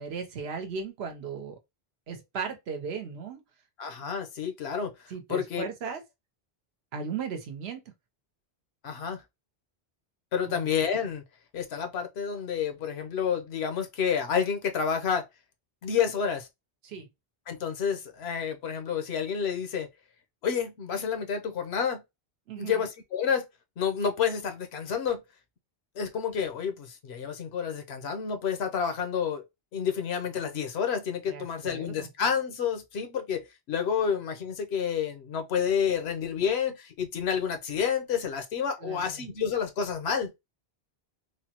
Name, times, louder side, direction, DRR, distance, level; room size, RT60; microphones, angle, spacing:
voice 1, 0.0-1.6 2.1-3.4 5.1-6.0 6.9-7.8 10.5-10.7 16.8-17.1 22.5-22.9 31.3-32.1 38.8-39.3, right 6 dB, 85° right, 1.0 m, -37 dB
voice 2, 3.8-4.9 5.3-5.6 8.8-9.2 10.3-11.2 11.5-15.2 15.8-16.5 17.5-19.9 20.4-22.0 22.6-23.5 23.8-25.2 26.0-29.4 29.7-40.3, left 7 dB, 85° left, 0.9 m, -29 dB
3.2 x 2.1 x 2.8 m
omnidirectional pair, 1.0 m